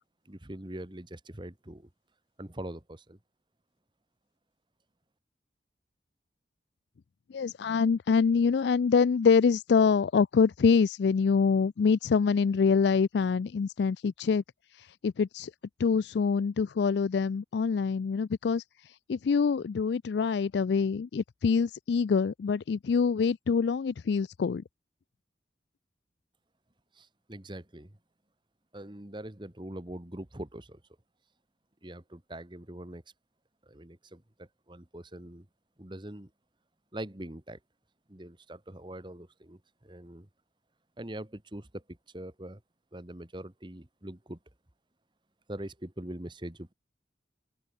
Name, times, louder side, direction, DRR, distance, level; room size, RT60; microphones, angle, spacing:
voice 1, 0.2-1.9 2.4-3.2 26.9-28.0 28.7-30.8 31.8-33.0 33.6-35.5 35.8-36.3 36.9-37.6 38.1-40.3 41.0-42.6 42.9-44.4 45.5-46.7, right 1 dB, 25° right, 1.6 m, -43 dB
voice 2, 7.3-14.4 15.0-15.5 15.8-18.6 19.1-24.6, left 5 dB, 70° left, 0.4 m, -25 dB
open air
head